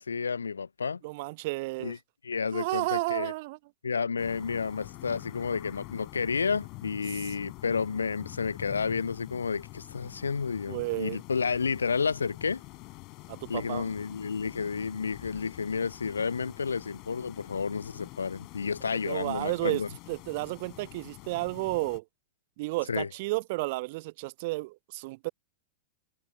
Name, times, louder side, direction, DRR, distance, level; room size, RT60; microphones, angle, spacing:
voice 1, 0.0-1.0 1.8-2.0 2.2-3.3 3.8-12.6 13.5-19.9 22.9-23.1, left 5 dB, 75° left, 0.4 m, -31 dB
voice 2, 1.0-1.9 2.5-3.6 10.7-11.2 13.3-13.9 19.0-19.8 20.1-22.0 22.6-25.3, right 23 dB, 45° right, 0.4 m, -32 dB
sound 1, 4.2-22.0, left 25 dB, 40° left, 5.8 m, -46 dB
figure-of-eight pair, 100°, 0 cm